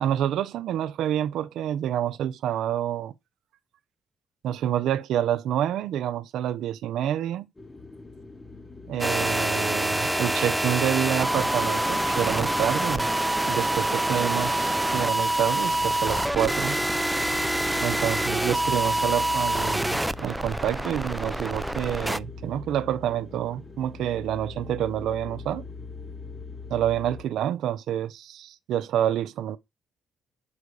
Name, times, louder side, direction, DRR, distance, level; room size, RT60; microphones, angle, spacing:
voice 1, 0.0-3.1 4.4-7.5 8.9-16.8 17.8-25.6 26.7-29.6, right 11 dB, 80° right, 0.6 m, -28 dB
sound 1, 7.6-27.2, left 4 dB, 20° left, 1.3 m, -42 dB
sound 2, 9.0-22.2, right 1 dB, 5° right, 0.4 m, -26 dB
6.9 x 4.9 x 4.8 m
cardioid pair, 90°, 0 cm